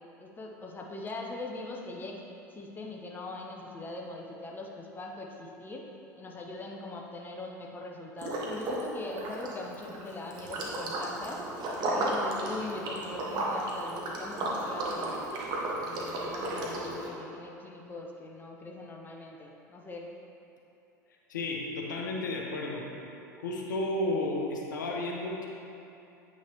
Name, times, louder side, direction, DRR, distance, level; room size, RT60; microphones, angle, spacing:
voice 1, 0.2-2.2 2.5-5.8 6.1-11.4 11.9-15.3 15.8-20.1, left 2 dB, 20° left, 0 dB, 0.8 m, -41 dB
Liquid, 8.2-8.9 9.1-17.1, right 1 dB, 45° right, 1.2 m, -33 dB
voice 2, 21.3-22.9 23.4-25.5, left 2 dB, 75° left, -1 dB, 0.8 m, -32 dB
8.4 x 5.7 x 3.0 m, 2.7 s
figure-of-eight pair, 75°, 10 cm